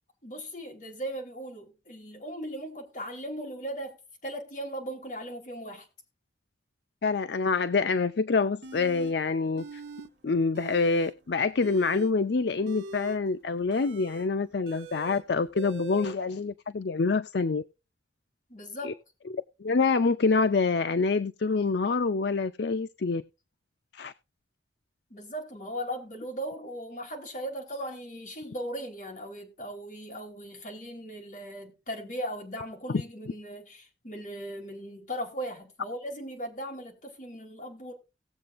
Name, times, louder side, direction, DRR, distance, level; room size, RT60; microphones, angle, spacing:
voice 1, 0.2-5.9 18.5-19.0 25.1-37.9, equal, 40° left, 3.4 m, -38 dB
voice 2, 7.0-9.8 10.2-17.6 18.8-18.9 19.3-23.2 23.9-24.1, left 4 dB, 65° left, 0.5 m, -26 dB
sound 1, 8.6-9.1 9.6-10.1 10.4-11.1 11.5-16.1, right 2 dB, 70° right, 1.1 m, -42 dB
18.0 x 7.6 x 2.5 m
head